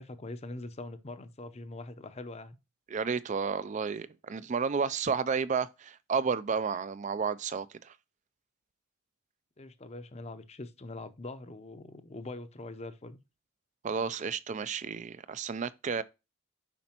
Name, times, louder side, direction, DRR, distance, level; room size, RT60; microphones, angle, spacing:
voice 1, 0.0-2.6 9.6-13.2, left 2 dB, 30° left, 0.6 m, -43 dB
voice 2, 2.9-7.9 13.8-16.0, right 5 dB, 35° right, 0.3 m, -32 dB
7.2 x 5.3 x 2.9 m
head